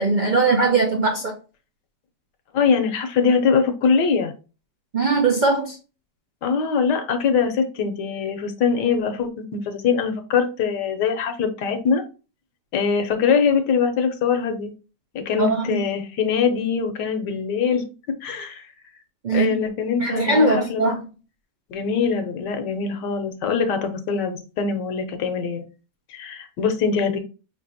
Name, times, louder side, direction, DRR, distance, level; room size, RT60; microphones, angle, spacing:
voice 1, 0.0-1.3 4.9-5.8 15.4-15.8 19.2-19.6 20.0-21.0, right 3 dB, 85° right, 1 dB, 0.4 m, -20 dB
voice 2, 2.5-4.3 6.4-12.0 12.7-14.7 15.1-17.8 18.2-18.7 19.3-21.0 21.7-25.6 26.1-27.2, left 6 dB, 80° left, 6 dB, 1.4 m, -22 dB
5.0 x 3.3 x 2.6 m, 0.33 s
omnidirectional pair, 1.8 m